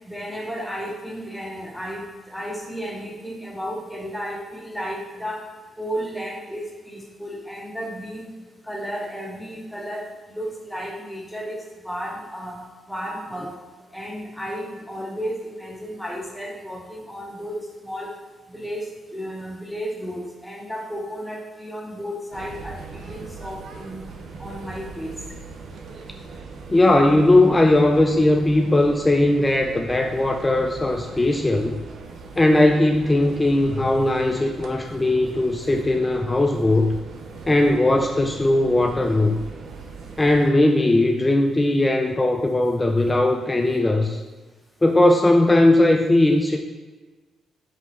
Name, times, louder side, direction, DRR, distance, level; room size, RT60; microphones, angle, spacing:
voice 1, 0.0-5.5 5.8-8.3 8.6-13.5 13.9-18.1 18.5-24.0 24.4-25.2, equal, 5° left, -1 dB, 0.9 m, -33 dB
sound 1, 22.3-40.5, right 4 dB, 70° right, 0.5 m, -40 dB
voice 2, 26.7-31.8 32.3-37.0 37.5-39.4 40.2-44.2 44.8-46.6, left 1 dB, 20° left, 3 dB, 0.3 m, -18 dB
4.0 x 3.4 x 3.1 m, 1.3 s
supercardioid pair, 65°, 0 cm